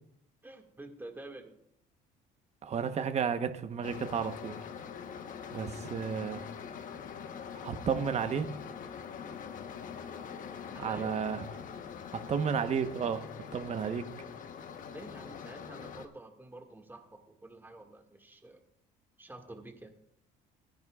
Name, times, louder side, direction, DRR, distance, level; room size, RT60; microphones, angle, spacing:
voice 1, 0.4-1.6 10.7-11.2 14.9-18.6 19.2-19.9, right 2 dB, 10° right, 3 dB, 2.0 m, -48 dB
voice 2, 2.6-4.6 5.5-6.5 7.6-8.5 10.8-11.5 12.3-13.2 13.5-14.1, right 7 dB, 40° right, 8 dB, 1.1 m, -32 dB
sound 1, 3.8-16.1, left 7 dB, 50° left, 1.1 m, -44 dB
18.0 x 10.5 x 2.4 m, 0.72 s
cardioid pair, 95°, 17 cm